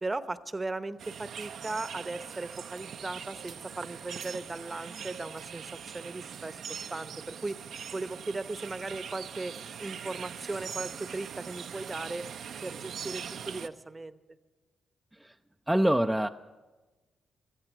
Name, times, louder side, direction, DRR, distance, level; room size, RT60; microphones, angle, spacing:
voice 1, 0.0-7.6 7.9-12.3 12.6-14.2, right 2 dB, 25° right, 14 dB, 0.9 m, -37 dB
sound 1, 1.0-13.7, right 8 dB, 65° right, 0.6 m, -42 dB
voice 2, 15.7-16.3, right 1 dB, 5° right, 5 dB, 0.5 m, -25 dB
16.0 x 14.0 x 6.1 m, 1.2 s
hypercardioid pair, 40°, 0 cm